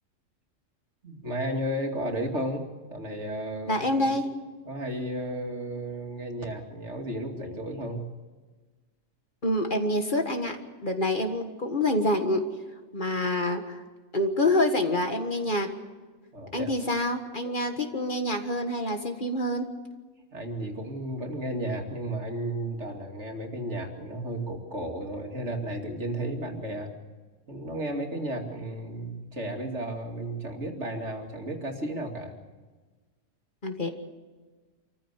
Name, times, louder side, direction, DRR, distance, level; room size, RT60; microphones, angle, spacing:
voice 1, 1.0-3.8 4.1-4.2 4.6-8.0 16.3-16.7 20.3-26.9 27.5-32.3, right 1 dB, 55° right, 3 dB, 2.8 m, -33 dB
voice 2, 3.7-4.3 9.4-10.6 10.8-12.4 12.9-13.8 14.1-15.7 16.5-19.7 33.6-33.9, left 1 dB, 40° left, 5 dB, 1.8 m, -26 dB
26.5 x 14.5 x 8.2 m, 1.3 s
omnidirectional pair, 1.4 m